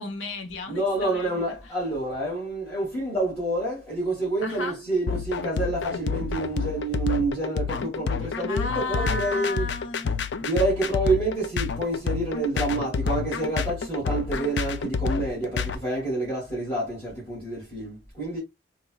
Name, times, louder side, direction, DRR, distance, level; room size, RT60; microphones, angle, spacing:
voice 1, 0.0-1.7 4.4-4.8 8.2-10.3, left 2 dB, 80° left, 0.8 m, -34 dB
voice 2, 0.7-9.7 10.4-18.4, right 2 dB, 15° left, 2.2 m, -28 dB
sound 1, 5.1-15.8, left 5 dB, 60° left, 0.4 m, -28 dB
4.1 x 2.6 x 2.2 m
head